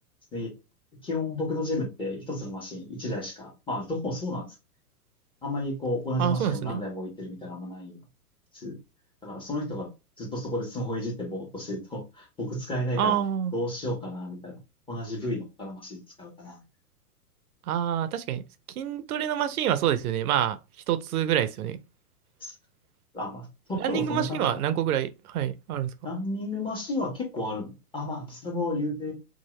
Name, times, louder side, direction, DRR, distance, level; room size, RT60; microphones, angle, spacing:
voice 1, 1.0-4.5 5.4-8.0 8.5-8.7 9.2-9.9 10.2-13.2 13.5-14.5 14.9-16.6 22.4-22.5 23.1-24.6 26.0-29.1, left 1 dB, 10° left, 1.3 m, -32 dB
voice 2, 6.2-6.8 13.0-13.5 17.7-18.4 18.8-20.6 20.9-21.8 23.8-25.9, right 10 dB, 65° right, 0.6 m, -27 dB
2.7 x 2.5 x 3.1 m
hypercardioid pair, 120°, 47 cm